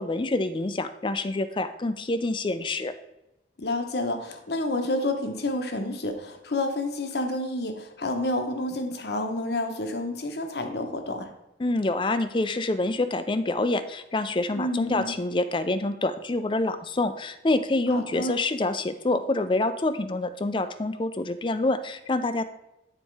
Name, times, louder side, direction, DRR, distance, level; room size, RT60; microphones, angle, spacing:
voice 1, 0.0-2.9 11.6-22.4, left 2 dB, 25° left, 11 dB, 0.4 m, -26 dB
voice 2, 3.6-11.3 14.6-15.1 17.9-18.3, left 1 dB, 65° left, 6 dB, 0.9 m, -29 dB
9.0 x 4.2 x 4.6 m, 0.88 s
head